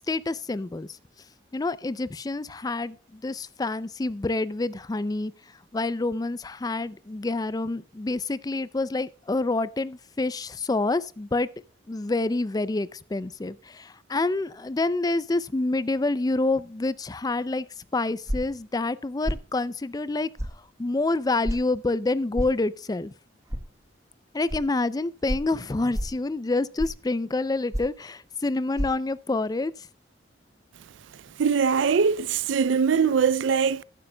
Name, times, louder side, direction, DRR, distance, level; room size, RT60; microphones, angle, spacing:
voice 1, 0.1-0.9 1.5-5.3 5.7-11.5 11.9-17.7 17.9-20.3 20.8-23.1 24.3-29.7, left 2 dB, 20° left, 0.4 m, -27 dB
sound 1, 18.3-18.6 19.2-19.5 20.4-20.6 21.4-21.6 22.3-22.6 23.5-23.6 24.5-24.6 25.3-25.5 25.9-26.2 26.8-27.1 27.7-28.0 28.7-28.9, equal, 15° right, 1.1 m, -29 dB
voice 2, 31.4-33.8, right 6 dB, 85° right, 0.4 m, -22 dB
14.0 x 11.5 x 2.3 m
head